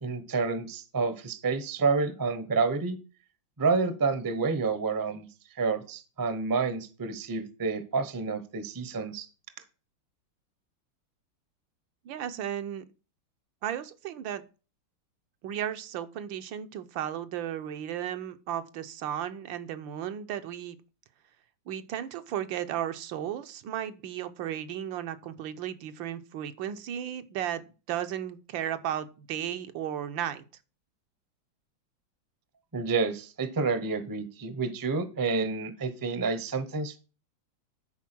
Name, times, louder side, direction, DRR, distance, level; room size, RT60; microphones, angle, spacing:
voice 1, 0.0-3.0 3.6-5.3 5.6-9.3 32.7-37.0, right 4 dB, 30° right, 0.4 m, -29 dB
voice 2, 12.0-12.8 13.6-14.4 15.4-20.8 21.7-30.4, right 10 dB, 85° right, 1.5 m, -34 dB
10.5 x 4.6 x 6.0 m
omnidirectional pair, 2.1 m